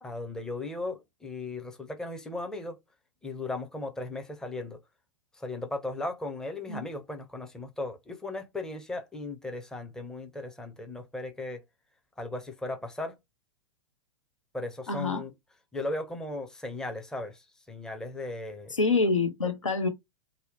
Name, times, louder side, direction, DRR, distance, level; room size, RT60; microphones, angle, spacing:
voice 1, 0.0-2.8 3.2-4.8 5.4-11.6 12.2-13.2 14.5-15.3 15.7-18.7, left 2 dB, 5° left, 0.5 m, -37 dB
voice 2, 14.9-15.2 18.7-19.9, left 3 dB, 90° left, 0.6 m, -26 dB
2.7 x 2.1 x 2.4 m
figure-of-eight pair, 105°, 16 cm